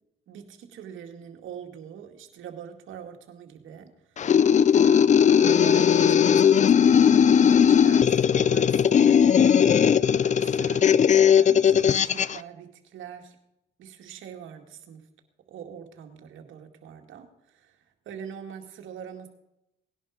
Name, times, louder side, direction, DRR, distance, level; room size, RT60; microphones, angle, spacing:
voice 1, 0.3-10.9 11.3-13.4 13.8-15.1 15.5-19.3, right 8 dB, 80° right, 4 dB, 2.2 m, -43 dB
sound 1, 4.2-12.4, left 8 dB, 35° left, 0.5 m, -18 dB
18.5 x 11.0 x 5.1 m, 0.87 s
cardioid pair, 90°, 20 cm